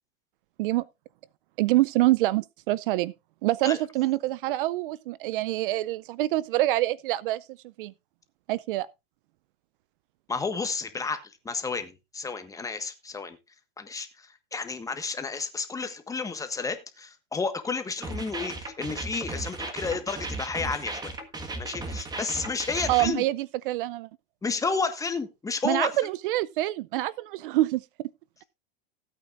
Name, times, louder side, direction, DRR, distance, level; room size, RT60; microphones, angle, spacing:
voice 1, 1.6-3.1 3.4-7.4 7.8-7.9 8.5-8.9 22.9-24.1 25.6-28.1, right 16 dB, 65° right, 0.5 m, -26 dB
voice 2, 10.3-13.4 13.8-21.1 21.6-23.2 24.4-26.0, left 4 dB, 10° left, 1.4 m, -31 dB
sound 1, 18.0-23.1, right 2 dB, 15° right, 1.6 m, -35 dB
16.5 x 8.7 x 2.5 m
supercardioid pair, 135°, 29 cm